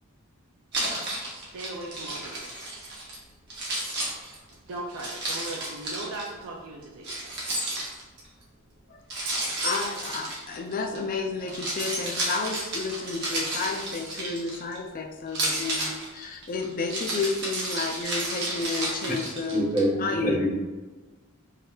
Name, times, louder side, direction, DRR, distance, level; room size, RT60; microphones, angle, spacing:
Keys jangling, 0.7-3.2 3.5-6.3 7.0-8.3 9.1-11.0 11.4-14.8 15.3-19.8, right 1 dB, 50° right, 0.9 m, -32 dB
voice 1, 1.2-2.4 4.7-7.3, right 2 dB, 75° right, -1 dB, 0.4 m, -38 dB
voice 2, 9.6-19.6 20.0-20.4, left 4 dB, 40° left, 3 dB, 0.4 m, -31 dB
voice 3, 19.5-20.5, equal, 20° right, -4 dB, 0.6 m, -25 dB
3.4 x 2.7 x 2.3 m, 1.2 s
head